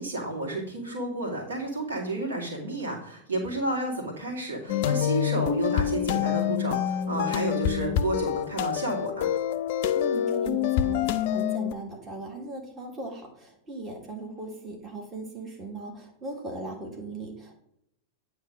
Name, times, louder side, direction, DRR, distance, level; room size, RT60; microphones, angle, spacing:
voice 1, 0.0-9.3, right 1 dB, 70° right, -1 dB, 2.0 m, -31 dB
sound 1, 4.7-11.7, left 10 dB, 50° left, 0.4 m, -26 dB
voice 2, 9.9-17.6, right 2 dB, 25° right, 0 dB, 1.7 m, -38 dB
9.1 x 3.2 x 5.1 m, 0.75 s
figure-of-eight pair, 90°, 0 cm